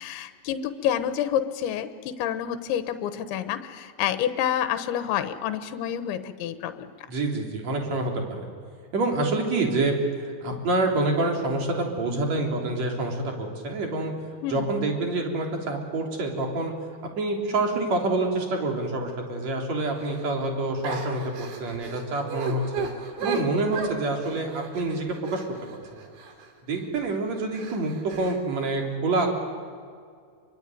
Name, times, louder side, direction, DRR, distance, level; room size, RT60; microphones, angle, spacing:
voice 1, 0.0-6.9 14.4-14.7 23.2-23.6, left 10 dB, 80° left, 10 dB, 3.4 m, -29 dB
voice 2, 7.1-8.5 8.9-10.0 10.2-14.1 14.5-16.7 17.2-22.9 23.2-25.4 25.9-26.1 26.7-27.9 28.2-29.3, right 2 dB, 40° right, 2 dB, 4.2 m, -27 dB
sound 1, 20.0-20.3 20.8-26.5 27.0-27.1 27.5-28.4, right 5 dB, 60° right, 4.6 m, -35 dB
26.0 x 24.0 x 9.3 m, 2.2 s
omnidirectional pair, 5.3 m